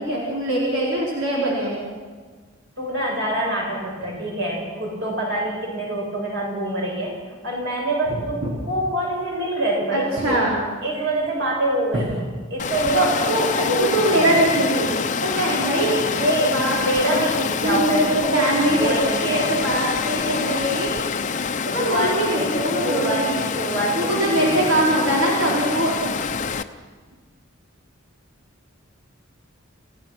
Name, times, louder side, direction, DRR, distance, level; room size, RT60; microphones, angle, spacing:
voice 1, 0.0-1.9 8.1-8.2 9.9-10.5 11.9-12.0 12.9-13.5 13.8-15.0 15.2-17.2 17.6-20.9 21.7-23.4 23.9-26.2, right 1 dB, 85° right, -5 dB, 4.8 m, -22 dB
voice 2, 2.8-7.2 7.4-10.5 10.8-12.1 12.5-14.4 16.3-16.5 16.8-19.5 21.8-23.3 23.6-24.5, right 1 dB, 60° right, -1 dB, 7.0 m, -25 dB
Water, 12.6-26.6, left 5 dB, 35° left, 0.7 m, -26 dB
27.0 x 16.0 x 6.0 m, 1.5 s
head